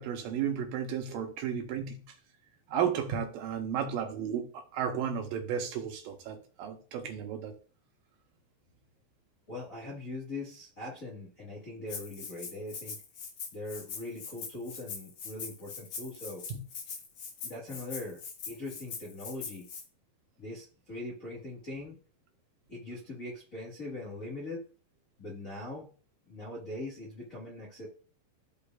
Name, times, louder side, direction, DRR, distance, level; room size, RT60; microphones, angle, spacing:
voice 1, 0.0-2.0 2.7-7.5 16.5-16.6, right 8 dB, 80° right, 2.8 m, -33 dB
voice 2, 9.5-13.0 13.5-16.4 17.4-19.7 20.4-22.0 22.7-24.7 25.2-25.9 26.3-27.9, left 2 dB, 35° left, 1.5 m, -41 dB
Rattle (instrument), 11.9-19.8, left 5 dB, 80° left, 1.2 m, -42 dB
13.5 x 5.1 x 2.5 m
omnidirectional pair, 4.2 m